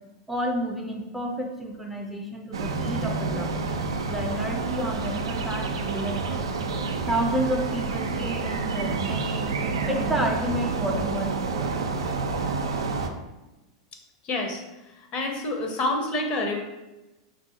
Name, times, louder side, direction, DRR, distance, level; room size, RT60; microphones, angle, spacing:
voice 1, 0.3-3.5 4.1-6.4 7.0-9.5 9.9-11.7, right 1 dB, 5° right, 0 dB, 0.4 m, -30 dB
sound 1, 2.5-13.1, right 4 dB, 85° right, 0.3 m, -29 dB
voice 2, 14.2-14.6 15.1-16.6, left 2 dB, 40° left, 2 dB, 0.6 m, -27 dB
3.9 x 2.2 x 2.7 m, 1.0 s
hypercardioid pair, 100°, 3 cm